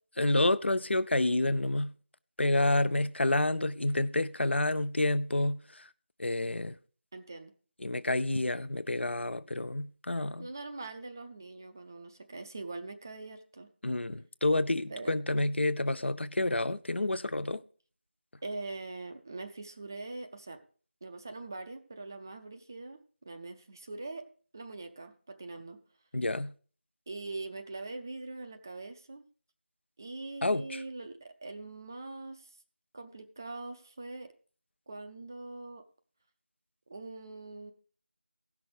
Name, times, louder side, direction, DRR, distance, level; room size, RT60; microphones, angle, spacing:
voice 1, 0.2-1.9 2.4-5.9 6.2-6.8 7.8-10.5 13.8-17.6 26.1-26.5 30.4-30.8, left 2 dB, 70° left, 0.7 m, -29 dB
voice 2, 7.1-7.5 10.4-13.7 14.9-15.1 18.4-20.6 21.0-23.0 23.2-24.3 24.5-25.8 27.1-29.2 30.0-32.6 32.9-34.3 34.9-35.8 36.9-37.7, right 3 dB, 15° right, 0.5 m, -42 dB
15.5 x 6.1 x 5.0 m
figure-of-eight pair, 170°, 6 cm